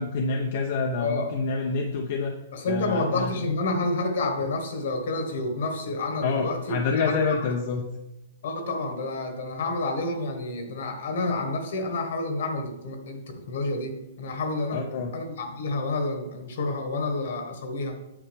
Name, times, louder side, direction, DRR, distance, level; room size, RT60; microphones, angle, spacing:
voice 1, 0.0-2.3 2.7-3.3 6.2-7.8 14.7-15.1, left 4 dB, 50° left, 2 dB, 0.7 m, -27 dB
voice 2, 1.0-1.4 2.5-7.4 8.4-17.9, left 2 dB, 65° left, 5 dB, 1.6 m, -29 dB
8.8 x 6.2 x 3.5 m, 0.95 s
hypercardioid pair, 165°, 0 cm